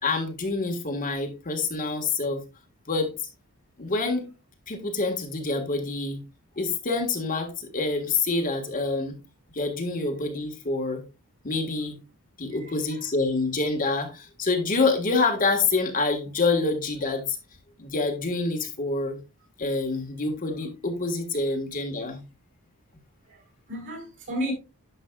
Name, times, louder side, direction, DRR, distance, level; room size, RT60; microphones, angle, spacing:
voice 1, 0.0-2.4 2.9-3.1 3.8-4.3 4.7-6.2 6.6-9.1 9.5-11.0 11.4-12.0 12.4-17.4 17.8-19.2 19.6-22.2, left 3 dB, 40° left, 1.6 m, -27 dB
voice 2, 23.3-24.5, equal, 60° right, 4.8 m, -33 dB
11.0 x 6.6 x 2.3 m
head